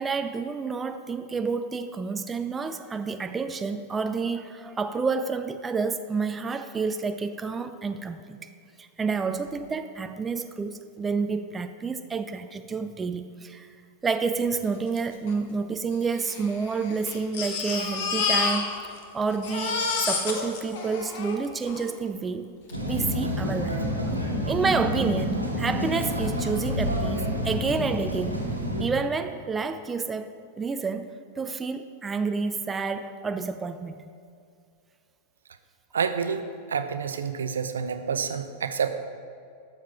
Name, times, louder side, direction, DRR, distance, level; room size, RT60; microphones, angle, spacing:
voice 1, 0.0-8.5 8.8-13.7 14.0-22.5 22.8-28.4 28.8-34.1, right 4 dB, 15° right, 9 dB, 0.5 m, -29 dB
Crying sobbing, 15.0-15.1 15.3-15.4 16.1-19.0 19.3-21.9 22.7-22.8 23.1-23.2, left 5 dB, 50° left, 1.3 m, -29 dB
sound 1, 22.7-28.8, equal, 85° right, 1.4 m, -28 dB
voice 2, 35.9-36.4 36.7-38.9, right 6 dB, 70° right, 9 dB, 0.6 m, -28 dB
12.0 x 7.3 x 4.5 m, 2.3 s
figure-of-eight pair, 90°, 0 cm